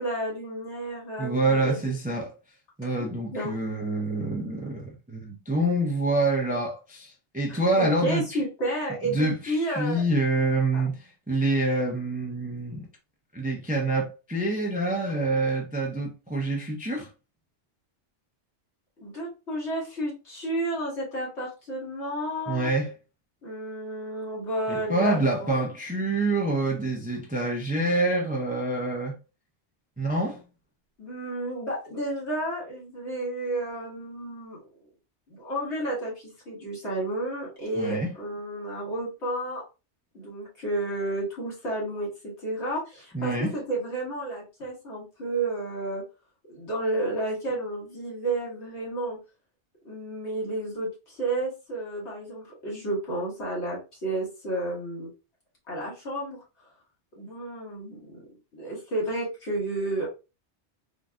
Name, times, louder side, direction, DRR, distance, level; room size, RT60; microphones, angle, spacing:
voice 1, 0.0-1.9 2.8-3.5 7.5-10.0 10.7-10.8 19.0-22.7 23.4-25.6 31.0-34.7 35.3-39.6 40.1-46.0 46.5-49.2 49.9-55.1 55.7-56.4 57.2-58.2 58.5-60.1, right 1 dB, 75° left, 1.9 m, -31 dB
voice 2, 1.2-2.3 2.8-8.4 9.1-12.9 13.3-17.1 22.5-22.9 24.7-29.1 30.0-30.4 37.8-38.1 43.1-43.5, right 2 dB, 15° right, 0.3 m, -26 dB
3.8 x 2.5 x 2.2 m
omnidirectional pair, 1.2 m